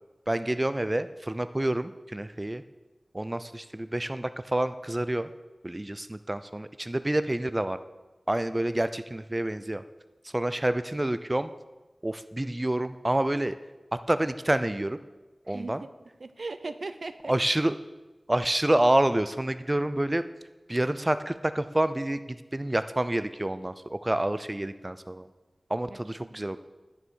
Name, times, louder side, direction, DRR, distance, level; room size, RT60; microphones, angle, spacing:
voice 1, 0.3-2.6 3.1-5.3 5.6-7.8 8.3-9.8 10.3-11.5 12.0-13.6 14.1-15.0 15.5-15.8 17.3-17.8 18.3-20.2 20.7-25.3 25.7-26.6, right 1 dB, 20° right, 12 dB, 0.4 m, -28 dB
voice 2, 15.4-15.9 16.2-17.6 25.9-26.4, right 3 dB, 70° right, 12 dB, 0.6 m, -39 dB
9.8 x 9.8 x 6.3 m, 1.2 s
wide cardioid pair, 80°, 0 cm